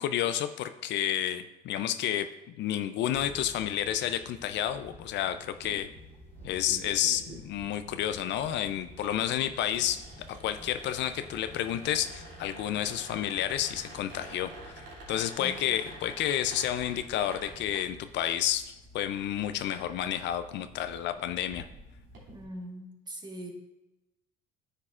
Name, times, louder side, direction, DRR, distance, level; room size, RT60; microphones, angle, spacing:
voice 1, 0.0-2.3 2.6-5.9 6.4-10.0 10.4-14.5 14.7-21.7, left 11 dB, 60° left, 10 dB, 0.5 m, -30 dB
sound 1, 3.1-17.7, left 1 dB, 10° left, 1.5 m, -52 dB
sound 2, 5.5-22.4, right 1 dB, 65° right, 2.7 m, -49 dB
voice 2, 22.3-23.5, right 1 dB, 20° right, 1 dB, 1.5 m, -41 dB
9.9 x 6.6 x 2.4 m, 0.99 s
supercardioid pair, 90°, 20 cm